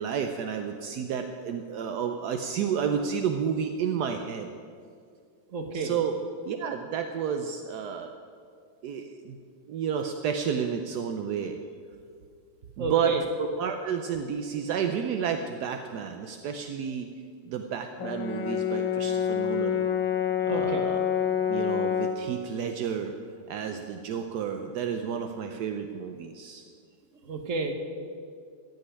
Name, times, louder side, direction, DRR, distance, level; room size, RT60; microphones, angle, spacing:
voice 1, 0.0-4.5 5.7-6.2 6.5-8.1 8.8-9.4 9.7-11.6 12.8-17.1 17.5-19.8 20.4-21.0 21.5-23.1 23.5-26.6, right 7 dB, 70° right, 6 dB, 0.9 m, -31 dB
voice 2, 5.5-5.9 12.8-13.2 20.5-20.8 27.2-27.7, right 3 dB, 45° right, 4 dB, 1.3 m, -30 dB
Brass instrument, 18.0-22.3, left 8 dB, 70° left, 1.4 m, -27 dB
15.0 x 5.4 x 9.8 m, 2.2 s
omnidirectional pair, 2.4 m